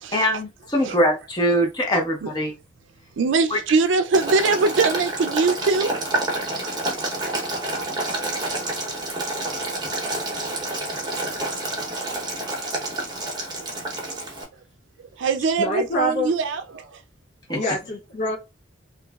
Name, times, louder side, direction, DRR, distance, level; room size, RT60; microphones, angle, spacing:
voice 1, 0.1-2.5 3.5-3.6 17.5-17.6, equal, 20° left, 0.8 m, -22 dB
voice 2, 3.2-6.0 7.8-7.9 9.7-9.8 11.0-11.1 13.6-13.7 14.1-14.2 15.0-16.9 17.5-17.6, right 4 dB, 80° right, 0.4 m, -22 dB
Boiling, 4.1-14.4, right 2 dB, 20° right, 0.8 m, -28 dB
voice 3, 15.6-16.3 17.5-18.4, left 1 dB, 40° left, 0.5 m, -25 dB
3.1 x 2.5 x 2.3 m
head